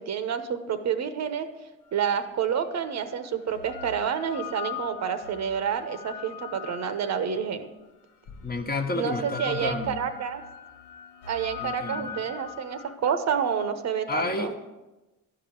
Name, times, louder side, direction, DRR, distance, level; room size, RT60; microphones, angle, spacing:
voice 1, 0.0-1.5 1.9-7.7 8.9-10.4 11.3-14.5, right 7 dB, 60° right, 9 dB, 1.0 m, -29 dB
sound 1, 2.2-2.3 3.2-7.5 8.3-12.9, left 7 dB, 85° left, 0.9 m, -41 dB
voice 2, 8.4-10.0 11.6-12.2 14.1-14.7, left 2 dB, 30° left, 4 dB, 1.2 m, -31 dB
11.5 x 4.9 x 7.8 m, 1.1 s
cardioid pair, 90°, 30 cm